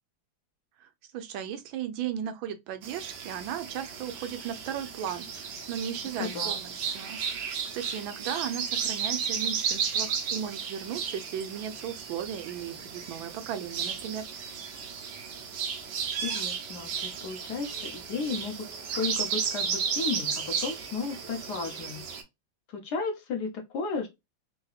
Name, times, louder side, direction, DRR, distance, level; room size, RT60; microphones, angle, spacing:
voice 1, 1.1-14.2, right 9 dB, 85° right, 1.4 m, -36 dB
sound 1, 2.8-22.2, right 6 dB, 70° right, 1.3 m, -34 dB
voice 2, 6.2-6.5 16.2-18.6 18.9-22.0 22.7-24.1, left 4 dB, 65° left, 1.2 m, -34 dB
3.8 x 2.7 x 2.3 m
omnidirectional pair, 2.1 m